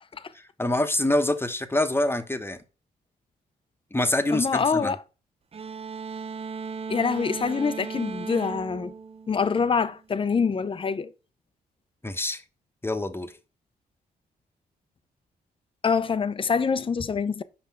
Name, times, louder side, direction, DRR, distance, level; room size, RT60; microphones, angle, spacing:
voice 1, 0.3-2.6 3.9-4.9 12.0-12.4 12.8-13.3, left 1 dB, 15° left, 1.0 m, -26 dB
voice 2, 4.3-5.0 6.9-8.9 9.3-11.1 15.8-17.4, left 5 dB, 30° left, 0.6 m, -25 dB
sound 1, 5.5-10.0, right 5 dB, 35° right, 0.5 m, -37 dB
5.5 x 5.0 x 3.5 m
supercardioid pair, 50°, 18 cm